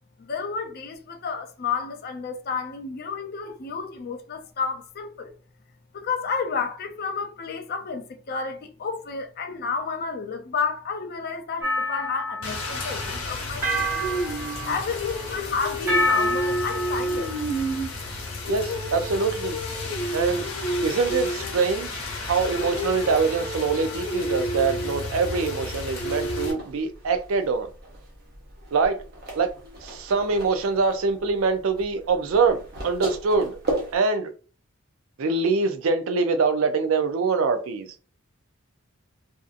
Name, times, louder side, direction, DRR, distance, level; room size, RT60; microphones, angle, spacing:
voice 1, 0.2-5.3 5.9-14.1 14.7-17.4, left 5 dB, 45° left, 0.4 m, -31 dB
sound 1, 11.6-12.9 13.6-15.2 15.9-17.4, left 1 dB, 10° right, 0.7 m, -28 dB
Rain, 12.4-26.5, equal, 70° left, 0.9 m, -30 dB
voice 2, 18.5-19.6 20.1-20.5 20.8-22.0 22.3-27.7 28.7-29.0 29.3-29.5 29.8-33.6 33.9-34.3 35.2-37.9, right 4 dB, 70° right, 0.4 m, -24 dB
sound 2, 25.6-34.0, right 1 dB, 45° right, 0.8 m, -37 dB
2.6 x 2.5 x 2.4 m
head